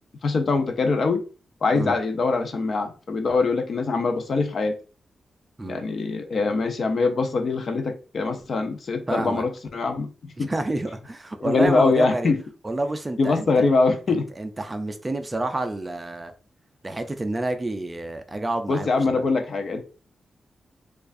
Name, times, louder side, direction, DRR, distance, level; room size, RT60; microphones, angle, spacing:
voice 1, 0.2-1.2 1.6-4.8 5.7-10.5 11.4-12.4 13.2-14.3 18.7-19.8, left 3 dB, 55° left, 0.6 m, -23 dB
voice 2, 9.1-9.4 10.4-12.3 12.6-13.7 14.1-16.3 16.8-18.9, right 2 dB, 20° right, 0.4 m, -29 dB
4.6 x 2.4 x 2.5 m
wide cardioid pair, 145°, 0 cm